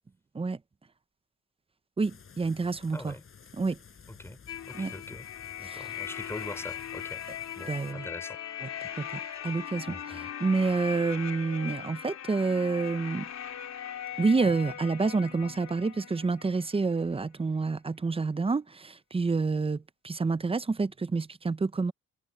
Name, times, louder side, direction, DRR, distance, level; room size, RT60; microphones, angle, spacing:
sound 1, 2.0-7.9, left 6 dB, 45° left, 5.5 m, -53 dB
voice 1, 2.0-3.1 3.6-3.8 4.7-4.9 5.6-5.8 7.7-8.1 8.6-8.7 9.0-13.3 14.2-21.9, right 4 dB, 20° right, 0.7 m, -28 dB
voice 2, 2.9-3.2 4.2-4.4 4.7-5.3 5.6-7.2 7.6-8.4 9.9-10.3, left 1 dB, 10° left, 3.5 m, -43 dB
sound 2, 4.5-17.1, left 9 dB, 60° left, 3.8 m, -40 dB
cardioid pair, 90°, 30 cm